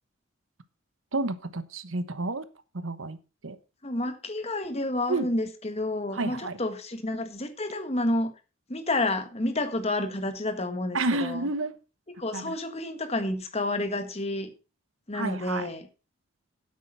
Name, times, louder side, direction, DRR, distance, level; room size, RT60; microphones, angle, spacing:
voice 1, 1.1-2.4 2.8-3.2 3.4-3.6 5.1-5.3 6.1-6.6 10.9-11.7 12.3-12.6 15.1-15.7, right 2 dB, 75° right, 1.1 m, -30 dB
voice 2, 3.8-8.3 8.7-11.5 12.1-14.5 15.1-15.9, left 2 dB, 30° left, 1.6 m, -30 dB
9.6 x 8.6 x 5.6 m
head